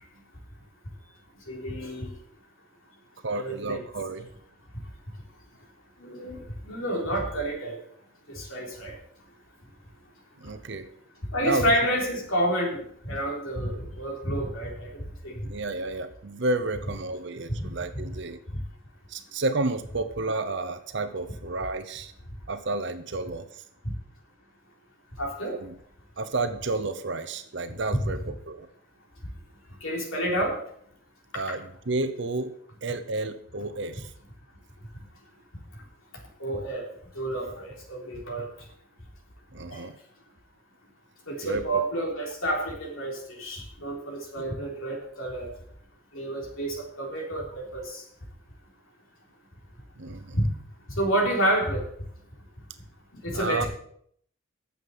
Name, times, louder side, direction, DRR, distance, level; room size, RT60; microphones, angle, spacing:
voice 1, 1.5-2.1 3.3-3.8 6.0-7.8 8.3-9.0 11.3-15.4 17.6-17.7 18.5-18.6 25.2-25.6 28.0-28.1 29.8-30.6 36.4-36.9 37.1-38.5 39.7-39.8 41.3-45.5 46.1-48.0 50.4-50.5 51.0-51.8 53.2-53.7, right 1 dB, 75° left, 0 dB, 3.6 m, -29 dB
voice 2, 3.2-4.3 10.4-10.9 11.4-11.9 15.5-18.4 19.1-22.1 22.5-23.6 25.6-25.7 26.2-28.7 31.3-34.1 39.5-39.9 41.4-41.8 50.0-50.4 53.3-53.6, right 2 dB, 55° right, 10 dB, 0.8 m, -31 dB
9.5 x 7.2 x 7.7 m, 0.65 s
head